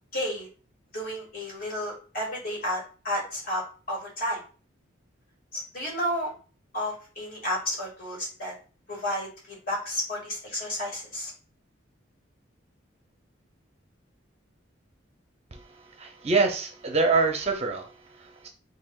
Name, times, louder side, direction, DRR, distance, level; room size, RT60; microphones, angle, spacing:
voice 1, 0.1-0.5 0.9-4.4 5.5-6.3 6.7-8.5 8.9-11.3, left 1 dB, 45° left, -3 dB, 2.0 m, -32 dB
voice 2, 16.0-18.5, right 4 dB, 35° right, 4 dB, 0.5 m, -26 dB
4.7 x 3.2 x 2.3 m, 0.37 s
head